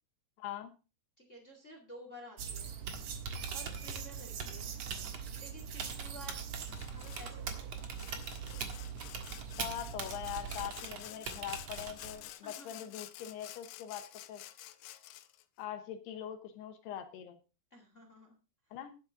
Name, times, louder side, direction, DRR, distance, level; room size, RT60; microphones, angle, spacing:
voice 1, 0.4-0.7 9.6-14.0 14.3-14.4 15.6-17.4 18.7-18.9, left 10 dB, 75° left, 7 dB, 2.9 m, -42 dB
voice 2, 1.2-2.8 3.2-4.8 5.4-6.4 6.9-8.0 12.4-12.9 17.7-18.3 18.6-18.8, equal, 30° left, 4 dB, 1.4 m, -53 dB
sound 1, 2.4-10.7, right 7 dB, 90° right, 1.5 m, -43 dB
Typing, 2.7-12.3, right 5 dB, 60° right, 1.7 m, -44 dB
Sawing, 6.7-7.3 7.7-15.4, left 15 dB, 90° left, 3.1 m, -50 dB
11.0 x 11.0 x 3.8 m, 0.31 s
omnidirectional pair, 5.1 m